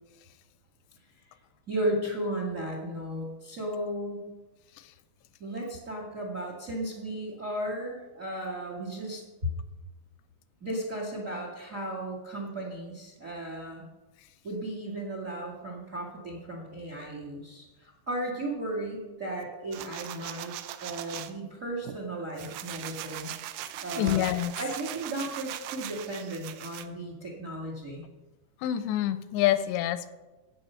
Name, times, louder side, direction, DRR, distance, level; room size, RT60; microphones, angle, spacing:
voice 1, 1.7-4.3 5.4-9.5 10.6-13.9 14.4-20.5 20.8-23.3 23.8-24.3 24.6-28.1, right 1 dB, 55° right, 0 dB, 0.8 m, -35 dB
sound 1, 19.7-21.3 21.8-26.9, right 12 dB, 80° right, 2.3 m, -40 dB
voice 2, 24.0-24.5 28.6-30.1, left 13 dB, 85° left, 12 dB, 2.8 m, -26 dB
13.0 x 8.8 x 5.6 m, 1.2 s
omnidirectional pair, 5.0 m